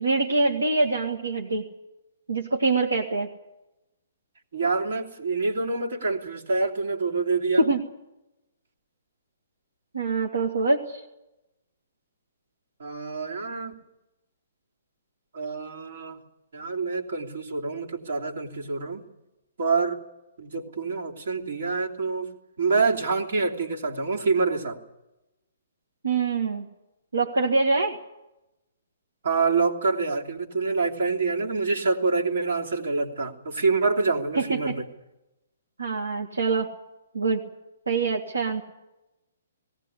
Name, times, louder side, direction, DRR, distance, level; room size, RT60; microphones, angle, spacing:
voice 1, 0.0-1.7 2.3-3.3 7.6-7.8 9.9-11.0 26.0-26.7 27.1-28.0 34.4-34.8 35.8-36.7 37.1-37.4 37.9-38.6, right 3 dB, 80° right, 1 dB, 2.0 m, -24 dB
voice 2, 4.5-7.6 12.8-13.7 15.3-16.2 16.5-19.1 19.6-20.0 20.4-22.3 22.6-24.8 29.2-34.9, right 4 dB, 65° right, 1 dB, 3.1 m, -26 dB
18.5 x 18.0 x 9.9 m, 0.96 s
figure-of-eight pair, 130°, 0 cm